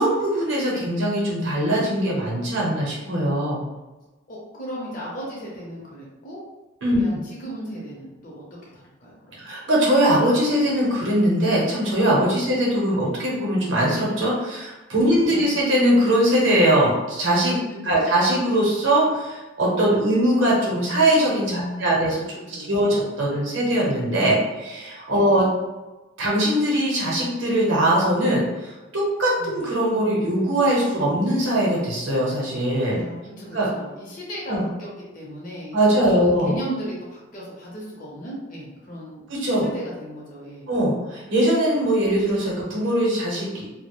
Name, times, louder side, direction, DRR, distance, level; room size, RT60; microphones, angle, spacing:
voice 1, 0.0-3.7 6.8-7.0 9.4-17.6 17.8-22.2 22.5-25.5 26.2-33.0 33.5-33.7 34.5-34.6 35.7-36.6 39.3-39.7 40.7-43.6, right 1 dB, 65° right, -4 dB, 0.7 m, -21 dB
voice 2, 4.3-6.4 6.9-9.5 12.4-12.5 15.1-15.4 17.7-18.1 21.5-22.2 22.5-23.0 25.1-25.5 29.4-29.6 32.9-34.9 35.1-39.2 39.6-40.7, equal, 40° left, -4 dB, 0.6 m, -36 dB
2.2 x 2.0 x 2.9 m, 1.1 s
head